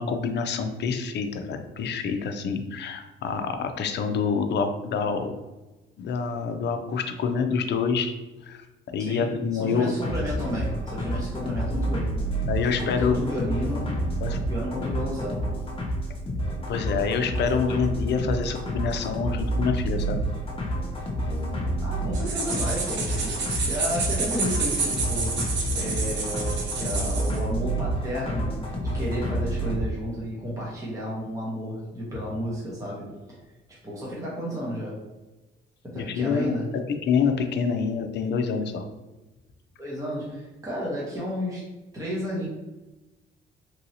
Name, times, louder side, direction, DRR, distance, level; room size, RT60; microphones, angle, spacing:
voice 1, 0.0-5.3 6.0-8.1 8.4-8.6 8.9-9.9 12.5-13.2 14.2-14.4 16.7-20.2 36.0-36.5 37.0-38.9, left 5 dB, 60° left, 6 dB, 0.5 m, -26 dB
voice 2, 9.0-12.1 12.8-13.9 14.2-15.5 21.8-25.5 25.7-33.4 33.8-35.0 35.8-36.7 39.8-41.7 41.9-42.5, equal, 15° right, -6 dB, 0.9 m, -32 dB
sound 1, 10.0-29.8, right 1 dB, 30° left, 0.8 m, -29 dB
sound 2, 22.1-27.4, right 4 dB, 65° right, 0.7 m, -29 dB
3.0 x 2.6 x 2.8 m, 1.1 s
cardioid pair, 90°, 20 cm